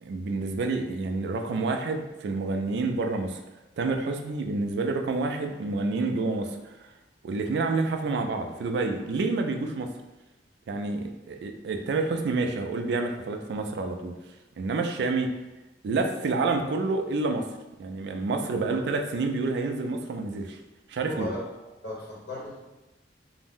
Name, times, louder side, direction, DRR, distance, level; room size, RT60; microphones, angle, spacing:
voice 1, 0.0-3.4 3.8-6.9 7.2-9.9 10.7-14.1 14.6-15.3 15.8-17.5 17.8-20.6 20.9-21.3, right 3 dB, 65° right, 5 dB, 0.3 m, -28 dB
voice 2, 21.1-21.4 21.8-22.6, left 1 dB, 75° left, -6 dB, 0.9 m, -36 dB
2.6 x 2.0 x 3.5 m, 1.0 s
head